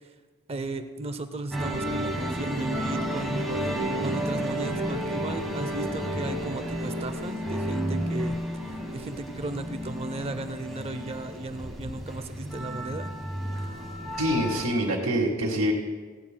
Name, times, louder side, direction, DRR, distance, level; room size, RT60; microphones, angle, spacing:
voice 1, 0.5-8.4 8.6-13.1, right 2 dB, 30° right, 9 dB, 0.5 m, -36 dB
sound 1, 1.5-14.6, equal, ahead, 1.9 m, -31 dB
voice 2, 14.2-15.7, right 1 dB, 80° right, -4 dB, 1.7 m, -25 dB
16.5 x 16.0 x 2.2 m, 1.4 s
head